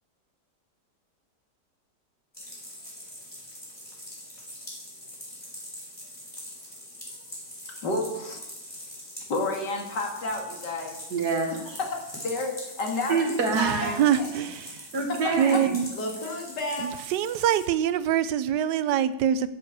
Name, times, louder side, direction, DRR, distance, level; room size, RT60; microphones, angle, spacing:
sound 1, 2.3-17.7, left 1 dB, 20° left, 4.8 m, -43 dB
voice 1, 7.8-8.4 9.3-11.0 12.2-12.5 12.8-14.3 15.5-15.6 15.9-16.9, left 2 dB, 85° left, 2 dB, 2.8 m, -30 dB
voice 2, 11.1-11.8 13.1-14.0 14.9-15.8, right 3 dB, 65° right, 3 dB, 2.5 m, -27 dB
voice 3, 13.5-14.9 15.4-15.9 16.8-19.5, right 9 dB, 90° right, 15 dB, 1.3 m, -25 dB
11.5 x 7.5 x 6.8 m, 0.92 s
omnidirectional pair, 1.8 m